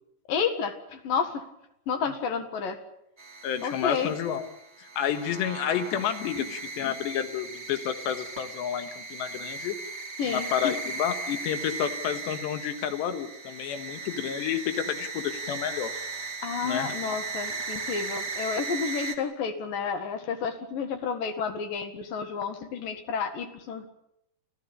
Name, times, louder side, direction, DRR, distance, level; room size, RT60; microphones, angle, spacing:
voice 1, 0.3-1.4 1.9-2.8 3.6-4.1 6.4-6.5 10.2-10.5 16.4-23.9, left 6 dB, 60° left, 8 dB, 3.2 m, -31 dB
sound 1, 3.2-19.2, right 4 dB, 15° right, 2.4 m, -37 dB
voice 2, 3.4-4.5 5.0-9.8 10.3-15.9 16.6-17.0, left 9 dB, 75° left, 9 dB, 3.6 m, -30 dB
28.5 x 15.5 x 8.8 m, 0.81 s
omnidirectional pair, 5.1 m